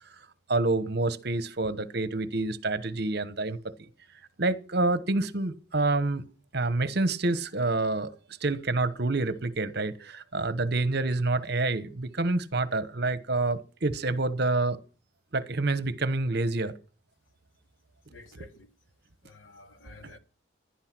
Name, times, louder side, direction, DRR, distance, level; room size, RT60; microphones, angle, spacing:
voice 1, 0.5-3.9 4.4-6.2 6.5-8.1 8.4-14.8 15.3-16.7 18.3-18.5, right 2 dB, 55° right, 1.1 m, -28 dB
voice 2, 18.1-18.7 19.2-20.2, left 3 dB, 90° left, 2.7 m, -51 dB
16.5 x 11.5 x 6.1 m
head